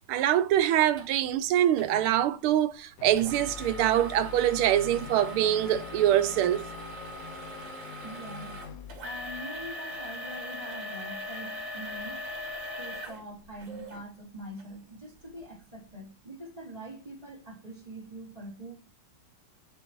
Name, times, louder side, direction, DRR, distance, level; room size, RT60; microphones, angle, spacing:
voice 1, 0.1-6.6, right 12 dB, 85° right, 1.5 m, -24 dB
sound 1, 1.0-1.1 1.8-2.0 3.2-14.0 14.6-14.7 15.3-15.4, left 1 dB, 65° right, 2.3 m, -40 dB
sound 2, 3.0-11.1, left 7 dB, 85° left, 0.7 m, -45 dB
voice 2, 8.0-8.6 9.0-12.2 12.8-18.7, right 1 dB, 20° right, 2.4 m, -44 dB
10.5 x 3.8 x 3.0 m
omnidirectional pair, 2.3 m